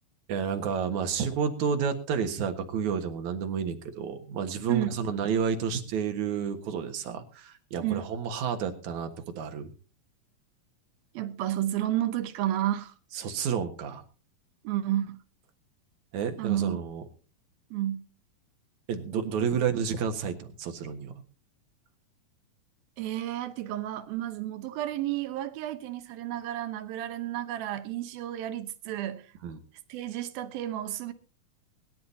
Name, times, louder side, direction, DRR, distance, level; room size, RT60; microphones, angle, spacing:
voice 1, 0.3-9.7 13.1-14.0 16.1-17.0 18.9-21.1 29.4-29.6, right 6 dB, 60° right, 2.6 m, -30 dB
voice 2, 11.1-12.9 14.6-15.2 16.4-16.8 17.7-18.1 23.0-29.3 29.9-31.1, right 13 dB, 80° right, 2.9 m, -31 dB
23.0 x 11.5 x 2.8 m
omnidirectional pair, 4.2 m